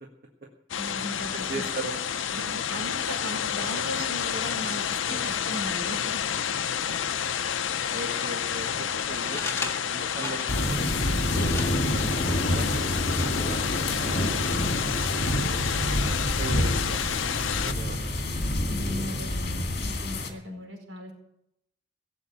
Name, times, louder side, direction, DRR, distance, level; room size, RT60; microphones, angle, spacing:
sound 1, 0.7-17.7, left 8 dB, 90° left, 0.6 m, -30 dB
voice 1, 0.8-1.6 2.3-6.2 7.9-8.3 18.7-21.1, equal, 80° right, 1 dB, 5.1 m, -38 dB
voice 2, 1.3-2.0 5.1-5.3 7.9-10.9 11.7-13.6 13.8-14.9 15.4-18.1, right 1 dB, 55° right, 0 dB, 1.6 m, -39 dB
sound 2, 9.0-16.3, left 3 dB, 15° left, 1.8 m, -41 dB
sound 3, 10.5-20.3, left 1 dB, 55° left, 2.3 m, -28 dB
17.0 x 8.1 x 8.5 m, 0.79 s
head